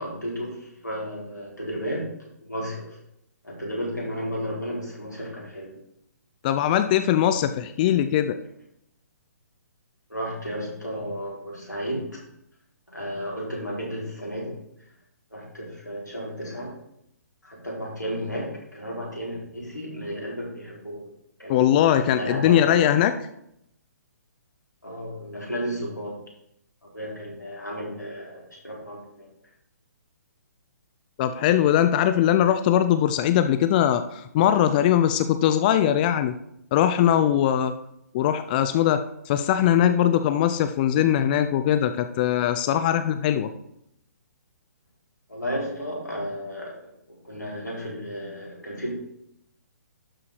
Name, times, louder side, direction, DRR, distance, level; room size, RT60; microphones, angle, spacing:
voice 1, 0.0-2.1 2.4-3.0 3.4-5.7 10.1-12.2 12.9-14.6 15.3-16.7 17.4-21.1 21.4-22.8 24.8-26.2 26.9-29.3 45.3-46.8 47.1-48.9, equal, 90° left, -4 dB, 4.3 m, -33 dB
voice 2, 6.4-8.3 21.5-23.1 31.2-36.3 36.7-37.7 38.1-43.5, left 10 dB, 30° left, 9 dB, 0.5 m, -21 dB
11.5 x 4.8 x 5.0 m, 0.77 s
figure-of-eight pair, 130°, 9 cm